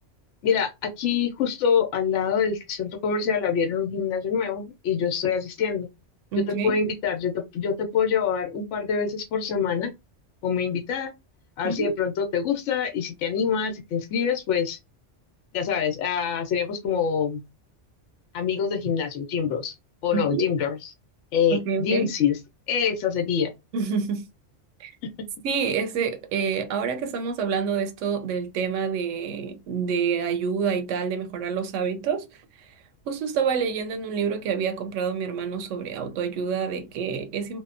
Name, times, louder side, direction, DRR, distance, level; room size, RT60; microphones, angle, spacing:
voice 1, 0.4-5.9 6.4-9.9 10.4-11.1 11.6-14.8 15.5-17.4 18.3-19.7 20.0-20.9 21.3-22.4 22.7-23.5 25.0-25.1, left 7 dB, 75° left, 0.9 m, -25 dB
voice 2, 6.3-6.8 11.6-12.0 20.1-20.5 21.5-22.1 23.7-24.3 24.8-24.9 25.4-32.7 33.1-37.6, right 6 dB, 85° right, 0.9 m, -27 dB
2.8 x 2.0 x 2.4 m
omnidirectional pair, 1.2 m